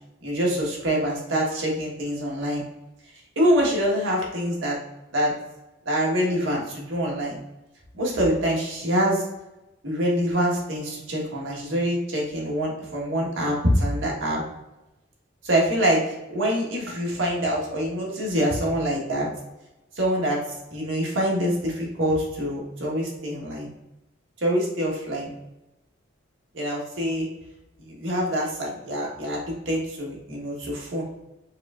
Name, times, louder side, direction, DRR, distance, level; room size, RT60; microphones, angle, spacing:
voice 1, 0.2-2.6 3.3-4.8 5.1-5.3 5.8-7.4 7.9-9.2 9.8-14.4 15.4-16.0 16.3-19.3 20.0-20.4 20.7-23.7 24.4-25.3 26.5-27.3 27.9-31.0, equal, 85° right, -2 dB, 1.3 m, -25 dB
4.8 x 3.1 x 2.4 m, 0.96 s
head